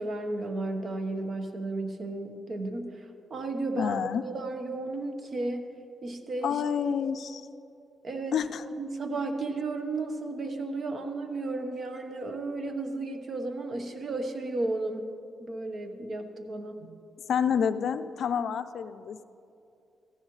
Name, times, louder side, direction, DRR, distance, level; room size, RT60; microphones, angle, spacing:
voice 1, 0.0-5.7 6.0-6.6 8.0-15.1 15.4-17.0, right 2 dB, 55° right, 6 dB, 1.2 m, -34 dB
voice 2, 3.8-4.2 6.4-7.5 8.3-8.6 17.3-19.2, left 7 dB, 70° left, 12 dB, 0.4 m, -28 dB
14.5 x 14.5 x 3.2 m, 2.7 s
supercardioid pair, 55°, 0 cm